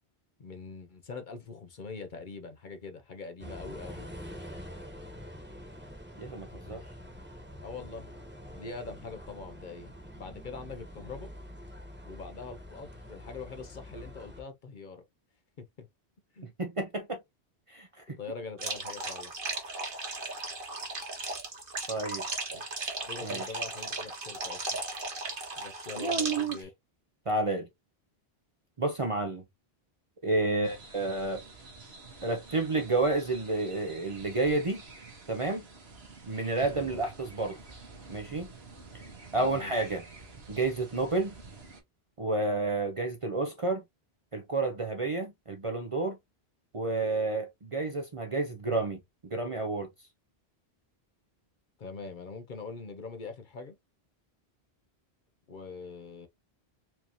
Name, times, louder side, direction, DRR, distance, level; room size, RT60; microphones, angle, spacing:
voice 1, 0.4-4.1 7.6-8.1 8.5-11.3 12.0-15.0 15.6-15.9 16.3-16.5 18.2-19.3 22.5-22.6 23.0-24.8 25.6-26.7 30.4-30.7 36.7-37.0 39.4-39.9 51.8-53.8 55.5-56.3, left 4 dB, 50° left, 0.8 m, -43 dB
sound 1, 3.4-14.4, equal, 10° right, 1.2 m, -46 dB
voice 2, 6.2-6.8 16.6-17.2 17.7-17.9 21.9-22.2 23.2-23.4 26.0-26.6 27.3-27.7 28.8-29.4 30.2-31.4 32.2-34.8 35.3-35.6 36.3-37.6 38.1-38.5 39.3-40.0 40.5-41.3 42.2-43.8 44.3-46.2 46.7-49.9, right 3 dB, 35° right, 0.6 m, -30 dB
sound 2, 18.6-26.6, right 3 dB, 55° right, 1.4 m, -36 dB
sound 3, 30.6-41.8, right 3 dB, 70° right, 1.6 m, -49 dB
4.6 x 2.7 x 2.9 m
omnidirectional pair, 1.1 m